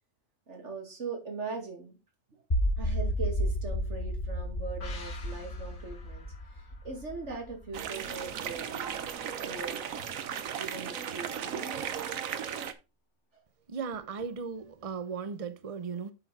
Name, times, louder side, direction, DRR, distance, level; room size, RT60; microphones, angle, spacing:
voice 1, 0.5-2.0 2.8-6.3 6.5-9.0 9.4-9.9 10.5-11.7, right 4 dB, 60° right, 2.6 m, -40 dB
sound 1, 2.5-8.6, equal, 35° left, 2.1 m, -32 dB
sound 2, 4.8-8.3 8.6-8.7, left 4 dB, 80° left, 2.2 m, -51 dB
sound 3, 7.7-12.7, right 8 dB, 80° right, 1.3 m, -36 dB
voice 2, 13.7-16.1, right 5 dB, 30° right, 0.7 m, -36 dB
8.1 x 6.4 x 4.1 m
omnidirectional pair, 1.4 m